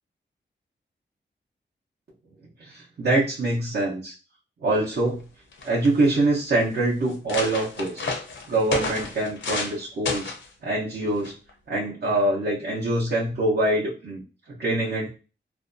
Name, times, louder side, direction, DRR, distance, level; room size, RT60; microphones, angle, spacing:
voice 1, 2.6-4.1 4.6-5.2 5.6-8.1 8.5-10.3 10.6-11.3 11.7-14.2 14.5-15.1, right 2 dB, 60° right, -6 dB, 0.7 m, -24 dB
sound 1, 5.2-5.3 5.5-6.1 6.7-6.8 7.1-9.8 10.1-10.5 11.2-11.5, left 4 dB, 75° left, 0.6 m, -31 dB
2.5 x 2.2 x 2.5 m, 0.33 s
wide cardioid pair, 90°, 20 cm